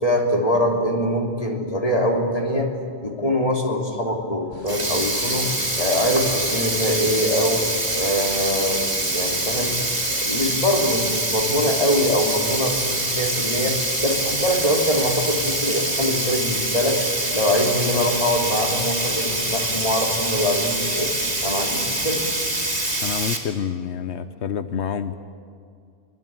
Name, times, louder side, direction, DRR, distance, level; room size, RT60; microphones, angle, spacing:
voice 1, 0.0-2.7 3.0-5.5 5.8-7.6 7.9-9.7 10.1-13.8 14.0-17.1 17.3-21.1 21.4-22.2, equal, 35° left, 0 dB, 3.3 m, -23 dB
Sink (filling or washing), 4.5-23.4, right 1 dB, 35° right, 3.0 m, -25 dB
sound 1, 4.5-23.1, right 1 dB, 70° right, 7.1 m, -42 dB
voice 2, 23.0-25.1, left 7 dB, 85° left, 11 dB, 1.2 m, -28 dB
24.0 x 23.5 x 8.9 m, 2.3 s
omnidirectional pair, 1.1 m